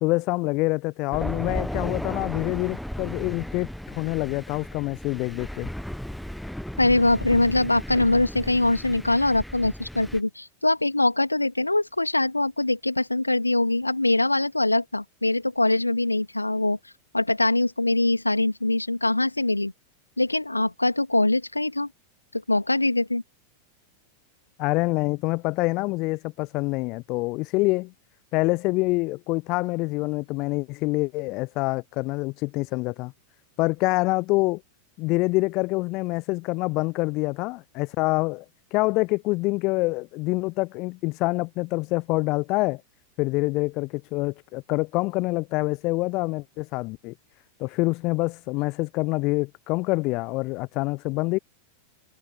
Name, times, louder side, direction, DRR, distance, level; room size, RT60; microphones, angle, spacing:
voice 1, 0.0-5.7 24.6-27.9 28.3-33.1 33.6-34.6 35.0-38.4 38.7-42.8 43.2-47.1 47.6-51.4, left 24 dB, 40° left, 0.7 m, -26 dB
Thunder, 1.1-10.2, equal, ahead, 1.1 m, -35 dB
voice 2, 6.8-16.8 17.1-19.7 20.2-21.9 22.3-23.2, left 2 dB, 85° left, 3.0 m, -23 dB
figure-of-eight pair, 90°, 0 cm